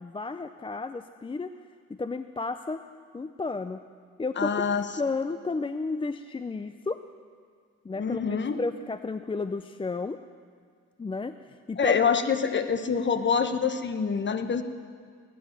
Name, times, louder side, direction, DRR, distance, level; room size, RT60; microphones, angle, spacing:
voice 1, 0.0-1.5 1.9-2.8 3.1-3.8 4.2-7.0 7.8-10.2 11.0-11.4 11.7-11.9, left 3 dB, 15° left, 10 dB, 0.5 m, -32 dB
voice 2, 4.4-4.9 8.0-8.6 11.8-14.6, left 6 dB, 40° left, 9 dB, 1.2 m, -26 dB
20.0 x 10.0 x 6.7 m, 2.1 s
cardioid pair, 90°, 30 cm